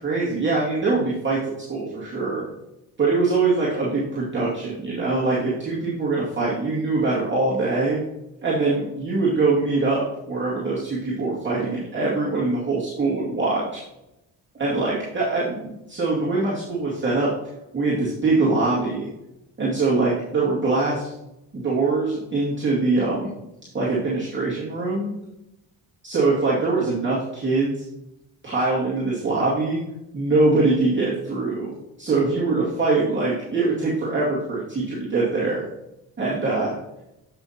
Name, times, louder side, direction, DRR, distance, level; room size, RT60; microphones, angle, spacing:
voice 1, 0.0-2.5 3.0-8.0 8.4-13.8 14.6-17.3 17.7-19.1 19.6-21.1 21.5-23.3 23.7-25.1 26.0-27.9 28.4-29.8 30.1-31.7 32.0-35.6 36.2-36.7, right 3 dB, 25° right, -7 dB, 2.2 m, -23 dB
8.5 x 5.8 x 2.9 m, 0.90 s
supercardioid pair, 65°, 47 cm